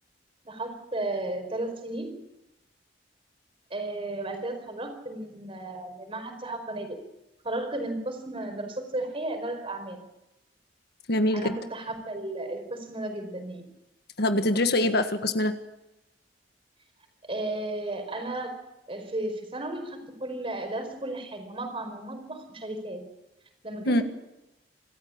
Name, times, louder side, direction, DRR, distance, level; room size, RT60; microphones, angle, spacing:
voice 1, 0.4-2.2 3.7-7.0 7.4-10.0 11.3-13.7 17.2-18.5 18.9-23.0 23.6-24.0, right 2 dB, 30° right, 6 dB, 4.9 m, -34 dB
voice 2, 11.1-11.5 14.2-15.6 23.8-24.0, left 1 dB, 60° left, 8 dB, 1.6 m, -24 dB
26.5 x 14.0 x 8.7 m, 0.92 s
head